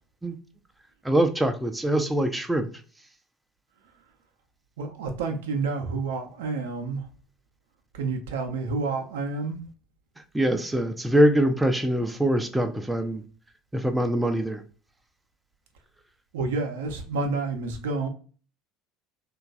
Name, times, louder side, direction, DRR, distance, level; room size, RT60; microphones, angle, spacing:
voice 1, 1.0-2.7 10.3-13.2 13.7-14.6, right 1 dB, 10° right, 0.4 m, -23 dB
voice 2, 4.8-7.0 7.9-9.6 16.3-18.1, right 3 dB, 70° right, 0.5 m, -29 dB
3.0 x 2.3 x 2.4 m
figure-of-eight pair, 65°, 0 cm